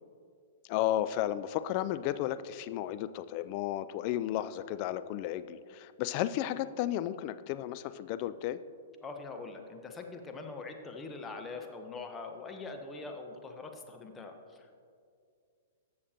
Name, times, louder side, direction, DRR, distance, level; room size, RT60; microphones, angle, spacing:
voice 1, 0.7-8.6, left 12 dB, 45° left, 13 dB, 0.3 m, -33 dB
voice 2, 9.0-14.8, left 3 dB, 15° left, 4 dB, 0.9 m, -43 dB
14.5 x 6.6 x 2.9 m, 2.3 s
hypercardioid pair, 115°, 0 cm